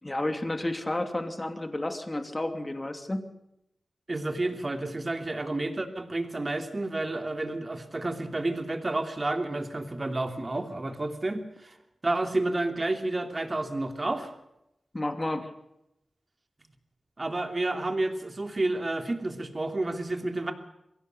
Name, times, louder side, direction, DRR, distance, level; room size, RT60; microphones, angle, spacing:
voice 1, 0.0-3.2 14.9-15.5, left 1 dB, 25° left, 7 dB, 2.8 m, -31 dB
voice 2, 4.1-11.8 12.0-14.3 17.2-20.5, right 2 dB, 40° right, 6 dB, 3.1 m, -30 dB
22.5 x 17.0 x 6.8 m, 0.83 s
cardioid pair, 50°, 0 cm